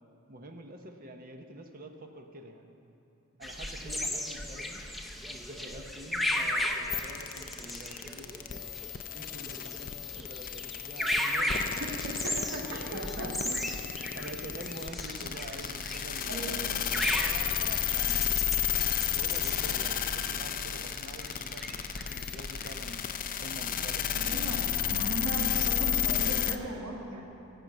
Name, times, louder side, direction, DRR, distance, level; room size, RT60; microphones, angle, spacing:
voice 1, 0.3-2.9 3.4-4.8 5.3-8.7 9.1-12.2 12.9-18.3 18.9-24.1, right 1 dB, 40° right, 4 dB, 0.8 m, -46 dB
sound 1, 3.4-23.0, left 1 dB, ahead, 0.7 m, -36 dB
sound 2, 6.9-26.5, left 9 dB, 40° left, 0.5 m, -32 dB
voice 2, 11.6-13.5 16.3-16.5 24.1-27.2, right 1 dB, 90° right, -2 dB, 2.2 m, -37 dB
17.5 x 6.2 x 7.8 m, 2.9 s
head